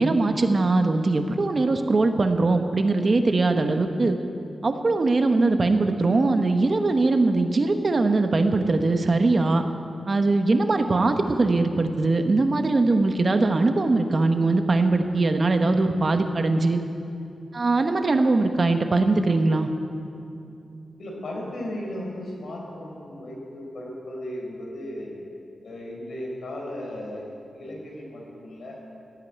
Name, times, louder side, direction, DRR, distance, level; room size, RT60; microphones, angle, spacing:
voice 1, 0.0-4.2 4.6-9.6 10.1-16.8 17.5-19.7, right 3 dB, 35° right, 6 dB, 0.9 m, -21 dB
voice 2, 21.0-25.1 25.6-28.8, left 1 dB, 70° left, -1 dB, 4.4 m, -36 dB
16.5 x 9.0 x 9.3 m, 2.6 s
wide cardioid pair, 160°, 0 cm